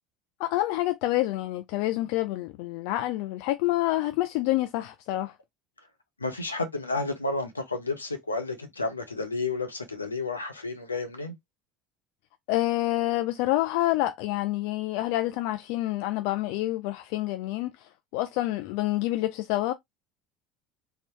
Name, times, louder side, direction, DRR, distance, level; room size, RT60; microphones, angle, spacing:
voice 1, 0.4-5.4 12.5-19.7, left 16 dB, 55° left, 0.3 m, -27 dB
voice 2, 6.2-11.4, left 3 dB, 85° left, 0.6 m, -31 dB
3.9 x 2.1 x 3.0 m
figure-of-eight pair, 65°, 0 cm